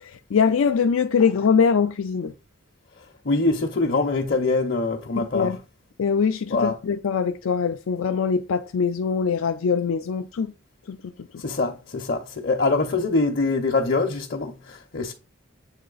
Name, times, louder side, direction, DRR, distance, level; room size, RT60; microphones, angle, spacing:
voice 1, 0.0-2.3 5.2-5.6 6.0-10.5 10.9-11.0, left 6 dB, 80° left, 0.4 m, -22 dB
voice 2, 3.2-5.5 6.5-6.8 11.4-15.1, left 3 dB, 50° left, 0.7 m, -24 dB
7.9 x 3.2 x 3.9 m
head